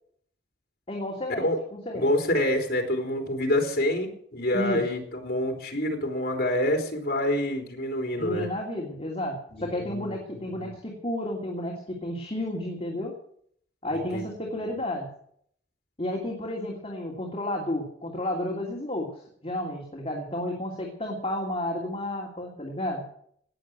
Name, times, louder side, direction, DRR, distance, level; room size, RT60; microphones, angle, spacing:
voice 1, 0.9-1.5 1.7-2.1 4.5-4.8 8.2-13.1 13.8-15.1 16.0-19.1 19.4-23.0, left 1 dB, 30° left, -2 dB, 2.8 m, -31 dB
voice 2, 1.9-8.5 9.5-10.7 14.1-14.3 14.6-14.7, left 1 dB, 60° left, 3 dB, 3.6 m, -27 dB
18.5 x 7.4 x 9.2 m, 0.65 s
head